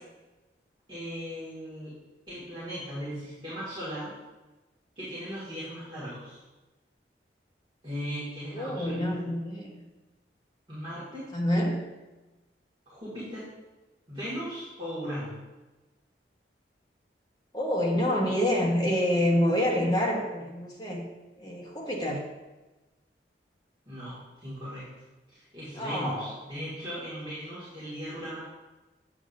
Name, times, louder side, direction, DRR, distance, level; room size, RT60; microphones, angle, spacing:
voice 1, 0.9-1.9 2.3-4.1 5.0-6.4 7.8-9.0 10.7-11.2 12.9-13.5 14.1-15.3 23.9-24.9 25.3-28.4, equal, 25° right, -11 dB, 2.1 m, -37 dB
voice 2, 8.5-9.8 11.3-11.8 17.5-21.1 21.4-22.2 25.8-26.3, equal, 20° left, -2 dB, 1.2 m, -27 dB
8.1 x 7.1 x 2.6 m, 1.1 s
head